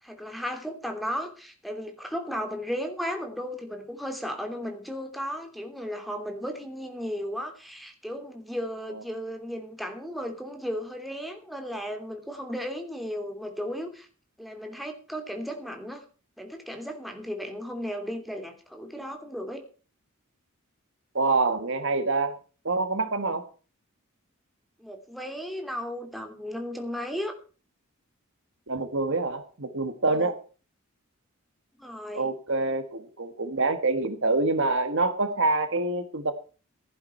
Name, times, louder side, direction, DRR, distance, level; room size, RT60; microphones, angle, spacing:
voice 1, 0.0-14.1 14.4-16.0 16.4-19.6 24.8-27.3 30.1-30.3 31.8-32.3, equal, ahead, 4 dB, 3.0 m, -35 dB
voice 2, 21.1-22.3 22.6-23.5 28.7-30.4 32.1-36.3, right 3 dB, 65° right, 9 dB, 1.7 m, -26 dB
15.5 x 11.0 x 4.5 m, 0.37 s
head